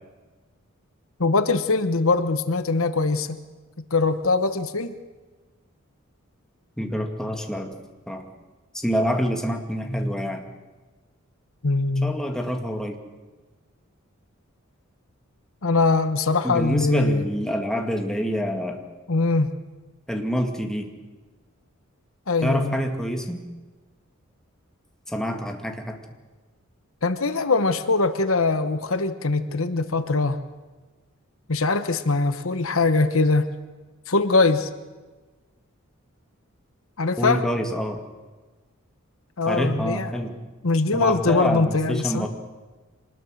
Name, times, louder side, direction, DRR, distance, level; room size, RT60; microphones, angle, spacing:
voice 1, 1.2-3.4 3.9-4.9 11.6-12.1 15.6-17.3 19.1-19.5 22.3-22.8 27.0-30.4 31.5-33.5 34.1-34.7 37.0-37.4 39.4-40.1 40.6-42.3, left 3 dB, 70° left, 10 dB, 1.1 m, -22 dB
voice 2, 6.8-7.7 8.1-8.3 8.7-10.4 12.0-13.0 16.4-18.8 20.1-20.9 22.4-23.4 25.1-26.0 37.2-38.0 39.5-40.4 40.9-42.3, equal, 5° left, 3 dB, 2.1 m, -26 dB
25.0 x 20.0 x 6.5 m, 1.3 s
head